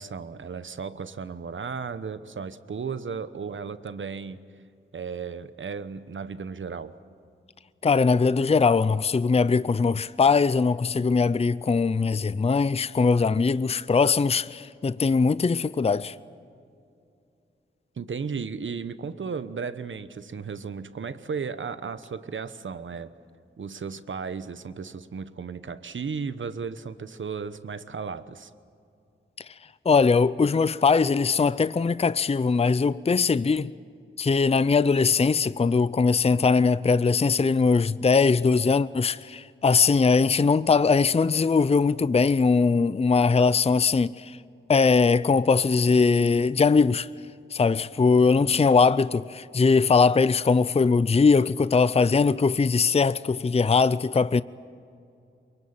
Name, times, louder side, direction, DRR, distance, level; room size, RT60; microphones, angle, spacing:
voice 1, 0.0-4.4 4.9-6.9 18.0-23.1 23.6-28.5, right 5 dB, 70° right, 1.1 m, -35 dB
voice 2, 7.8-16.1 29.9-33.7 34.2-44.4 44.7-47.1 47.5-54.4, left 4 dB, 30° left, 0.5 m, -21 dB
23.5 x 22.5 x 8.9 m
cardioid pair, 65°, 20 cm